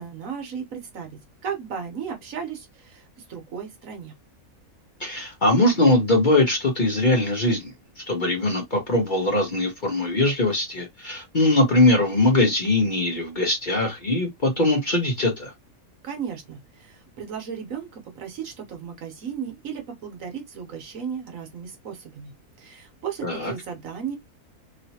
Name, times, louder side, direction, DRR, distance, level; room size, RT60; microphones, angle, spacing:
voice 1, 0.0-4.1 16.0-22.3 22.6-24.2, right 7 dB, 65° right, 1.3 m, -35 dB
voice 2, 5.0-7.7 8.1-15.5 23.2-23.5, left 2 dB, 40° left, 0.9 m, -21 dB
3.1 x 2.7 x 2.7 m
omnidirectional pair, 1.6 m